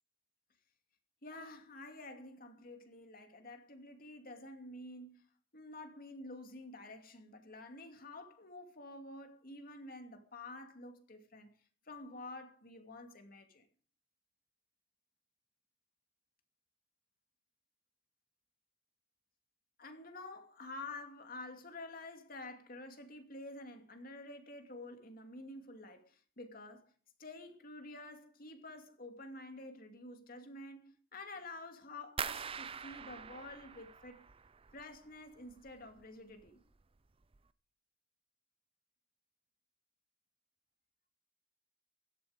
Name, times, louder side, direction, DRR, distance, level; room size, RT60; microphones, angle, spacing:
voice 1, 1.2-5.3 5.5-11.5 11.9-13.7 19.8-26.9 27.2-34.2 34.7-36.6, left 2 dB, 50° left, 2.6 m, -49 dB
sound 1, 32.2-35.0 35.3-36.0 36.4-36.8 37.2-37.4, right 6 dB, 30° right, 0.6 m, -44 dB
16.5 x 12.5 x 5.2 m
head